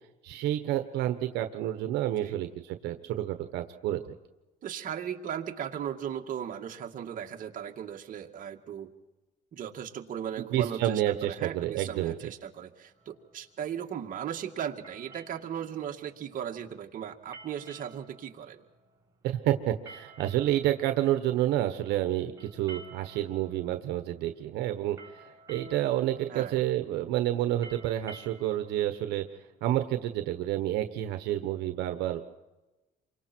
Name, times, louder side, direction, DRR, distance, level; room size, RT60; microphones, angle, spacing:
voice 1, 0.2-4.2 10.5-12.3 19.2-29.2 29.6-32.2, right 13 dB, 90° right, 7 dB, 1.3 m, -29 dB
voice 2, 4.6-8.9 9.5-18.6 26.3-26.6, right 9 dB, 50° right, 2 dB, 2.2 m, -37 dB
sound 1, 12.9-30.1, right 3 dB, 20° right, 4.1 m, -53 dB
28.5 x 24.5 x 4.6 m, 1.1 s
cardioid pair, 110°, 17 cm